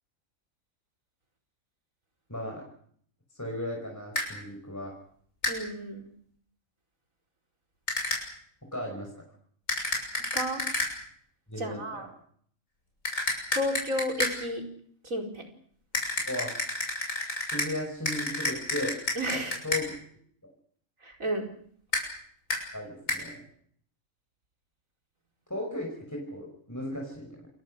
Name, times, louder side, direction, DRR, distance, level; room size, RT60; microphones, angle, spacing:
voice 1, 2.3-2.6 3.3-4.9 8.7-9.1 11.5-12.1 16.3-16.6 17.4-19.0 19.6-19.9 20.4-20.5 22.7-23.5 25.5-27.5, left 1 dB, 10° left, 0 dB, 5.6 m, -36 dB
sound 1, 4.2-4.3 5.4-5.6 7.9-8.2 9.7-10.9 13.1-14.4 15.9-17.7 18.1-19.8 21.9-22.1 22.5-22.6 23.1-23.2, left 2 dB, 75° left, 7.0 m, -30 dB
voice 2, 5.5-6.1 10.1-10.6 11.6-12.1 13.5-14.6 15.0-15.5 19.2-19.6 21.0-21.5, equal, 80° right, 3 dB, 5.1 m, -32 dB
28.0 x 22.5 x 6.5 m, 0.63 s
omnidirectional pair, 1.4 m